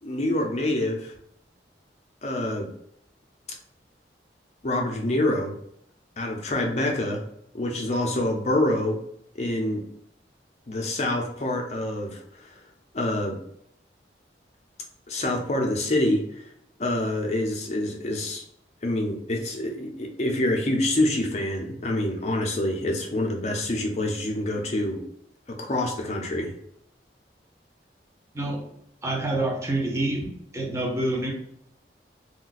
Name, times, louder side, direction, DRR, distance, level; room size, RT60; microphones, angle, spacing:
voice 1, 0.0-1.1 2.2-2.7 4.6-5.5 6.2-7.2 7.5-9.0 9.4-9.8 10.7-12.6 12.9-13.4 15.1-16.4 16.8-18.4 18.8-25.0 25.5-26.5, left 1 dB, 40° left, 2 dB, 0.5 m, -26 dB
voice 2, 29.0-30.3 30.5-31.3, right 1 dB, 15° right, -1 dB, 0.6 m, -27 dB
2.4 x 2.2 x 3.8 m, 0.71 s
head